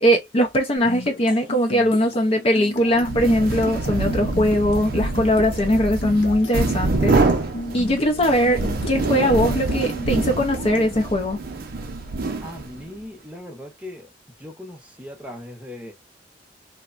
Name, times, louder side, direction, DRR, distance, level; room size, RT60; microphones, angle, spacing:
voice 1, 0.0-7.2 7.7-8.6 8.9-11.4, equal, 35° left, 0.5 m, -20 dB
sound 1, 0.8-11.0, left 1 dB, 85° left, 0.7 m, -36 dB
sound 2, 2.9-12.9, right 3 dB, 55° right, 0.5 m, -25 dB
voice 2, 12.4-14.1 14.4-15.9, left 1 dB, 10° right, 0.7 m, -38 dB
3.0 x 2.1 x 2.4 m
head